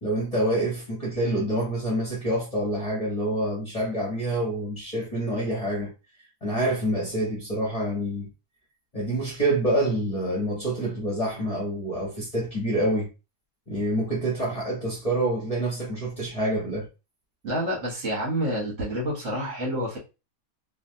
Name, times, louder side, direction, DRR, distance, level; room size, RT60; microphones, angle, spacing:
voice 1, 0.0-5.9 6.4-8.3 8.9-13.1 13.7-16.9, right 1 dB, 30° left, 0.9 m, -27 dB
voice 2, 17.4-20.0, equal, 55° right, 1.6 m, -28 dB
3.3 x 2.4 x 2.6 m
omnidirectional pair, 1.5 m